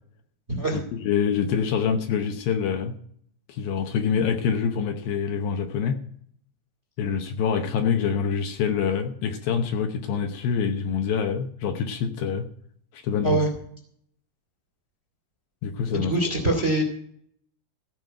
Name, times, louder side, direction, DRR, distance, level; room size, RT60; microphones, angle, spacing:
voice 1, 0.7-3.0 3.5-6.0 7.0-12.5 12.9-13.4 15.6-16.1, left 7 dB, 75° left, 6 dB, 2.5 m, -26 dB
voice 2, 15.9-16.8, right 2 dB, 25° right, 3 dB, 1.7 m, -23 dB
15.5 x 5.3 x 9.1 m, 0.63 s
omnidirectional pair, 4.7 m